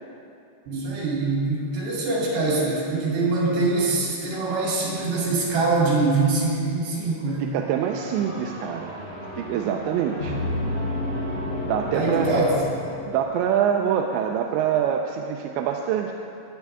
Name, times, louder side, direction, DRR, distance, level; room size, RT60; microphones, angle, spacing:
voice 1, 0.7-7.5 11.9-12.6, right 3 dB, 65° right, -5 dB, 5.0 m, -23 dB
voice 2, 7.4-8.9 9.4-10.4 11.6-12.3 13.1-16.1, right 9 dB, 85° right, 2 dB, 2.8 m, -25 dB
sound 1, 7.8-13.4, left 1 dB, 30° left, 2.0 m, -31 dB
17.5 x 10.5 x 3.5 m, 2.6 s
omnidirectional pair, 5.3 m